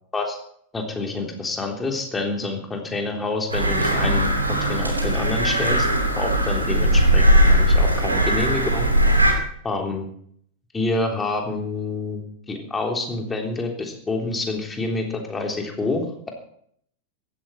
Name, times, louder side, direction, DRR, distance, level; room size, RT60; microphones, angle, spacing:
voice 1, 0.7-5.9 6.1-8.9 9.6-10.1 10.7-16.3, left 3 dB, 15° left, 2 dB, 3.5 m, -27 dB
sound 1, 3.5-9.3, right 1 dB, 85° right, 2.9 m, -19 dB
16.0 x 14.0 x 4.3 m, 0.65 s
figure-of-eight pair, 90°, 0 cm